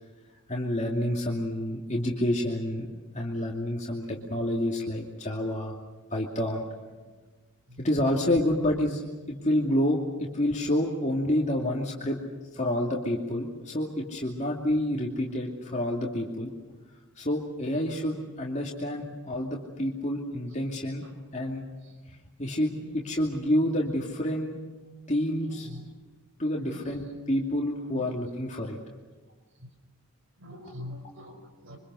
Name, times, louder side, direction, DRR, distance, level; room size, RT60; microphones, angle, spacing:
voice 1, 0.5-2.9 3.1-5.7 6.1-6.6 7.8-9.0 9.3-12.2 12.5-16.5 17.2-21.0 21.3-21.7 22.1-24.6 25.1-25.7 26.4-28.8, left 1 dB, 30° left, -1 dB, 2.6 m, -28 dB
voice 2, 22.8-23.1 25.4-25.9 26.6-26.9 27.9-28.1 30.4-31.8, left 1 dB, 60° right, 5 dB, 5.9 m, -44 dB
27.0 x 25.0 x 6.4 m, 1.3 s
head